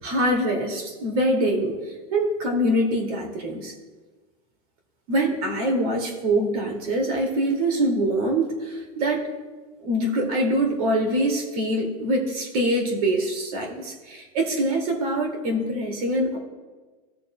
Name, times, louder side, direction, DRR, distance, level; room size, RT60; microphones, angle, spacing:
voice 1, 0.0-1.7 2.1-3.7 5.1-9.3 9.8-16.4, right 1 dB, 80° right, 2 dB, 2.2 m, -24 dB
17.5 x 6.8 x 2.2 m, 1.3 s
supercardioid pair, 110°, 19 cm